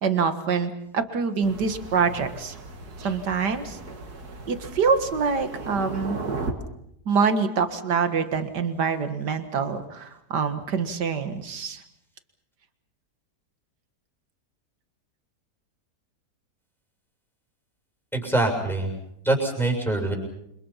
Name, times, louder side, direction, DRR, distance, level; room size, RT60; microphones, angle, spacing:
voice 1, 0.0-2.6 3.0-3.8 4.5-6.2 7.1-11.8, right 5 dB, 85° right, 9 dB, 2.3 m, -25 dB
Thunder, 1.4-6.5, right 3 dB, 65° right, 2.6 m, -36 dB
voice 2, 18.1-18.9 19.2-20.1, right 2 dB, ahead, 1 dB, 7.0 m, -24 dB
28.5 x 26.0 x 5.8 m, 0.77 s
omnidirectional pair, 1.8 m